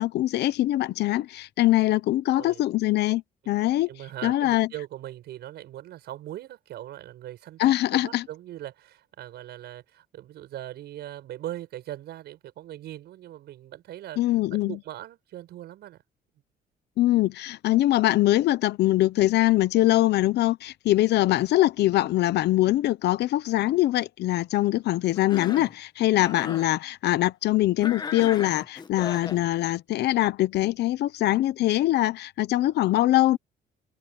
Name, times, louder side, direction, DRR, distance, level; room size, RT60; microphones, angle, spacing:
voice 1, 0.0-3.9 4.2-4.7 7.6-8.2 14.2-14.8 17.0-33.4, left 15 dB, 75° left, 0.8 m, -23 dB
voice 2, 3.9-14.2 14.5-16.0, right 13 dB, 75° right, 6.6 m, -40 dB
Cough, 25.1-25.7 26.1-26.7 27.8-29.4, left 5 dB, 25° left, 1.3 m, -36 dB
cardioid pair, 165°, 17 cm